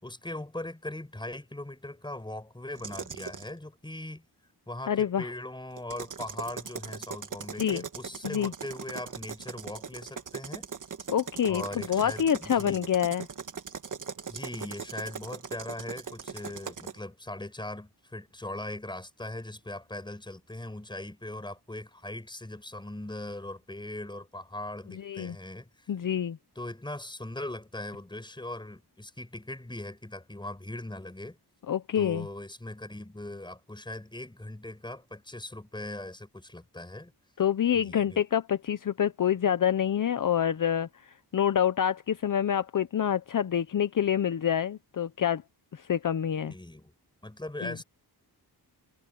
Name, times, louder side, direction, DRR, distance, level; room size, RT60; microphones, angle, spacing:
voice 1, 0.0-4.3 4.7-10.7 11.5-12.8 14.3-25.9 26.6-31.4 32.0-37.1 37.7-38.2 46.4-46.9 47.2-47.8, left 1 dB, 10° left, 5.3 m, -40 dB
sound 1, 2.8-3.5 5.8-17.0, right 6 dB, 50° right, 1.7 m, -40 dB
voice 2, 4.9-5.3 7.6-7.8 8.2-8.5 11.1-11.6 11.9-13.3 24.9-25.3 25.9-26.4 31.7-32.3 37.4-45.4 45.7-46.5 47.6-47.7, left 9 dB, 50° left, 0.8 m, -27 dB
wide cardioid pair, 115°, 40 cm